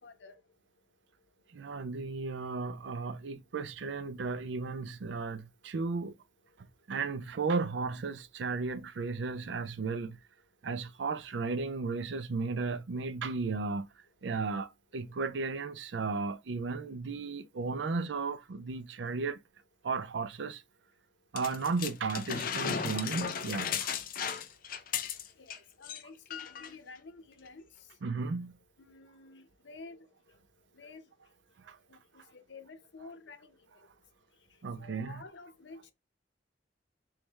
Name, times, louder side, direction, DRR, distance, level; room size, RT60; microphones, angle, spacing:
voice 1, 0.0-0.4 15.1-15.2 25.3-28.0 28.8-30.4 30.7-31.3 31.9-33.9 34.5-35.9, left 3 dB, 90° left, 0.7 m, -51 dB
voice 2, 1.5-6.1 6.9-10.2 10.6-13.9 14.2-19.4 19.8-20.6 21.3-23.9 28.0-28.6 31.7-31.8 34.6-35.2, right 4 dB, 80° right, 0.5 m, -34 dB
sound 1, 21.4-25.6 25.8-26.0 26.3-26.7 27.5-27.6, left 7 dB, 50° left, 0.5 m, -35 dB
3.3 x 3.1 x 3.3 m
head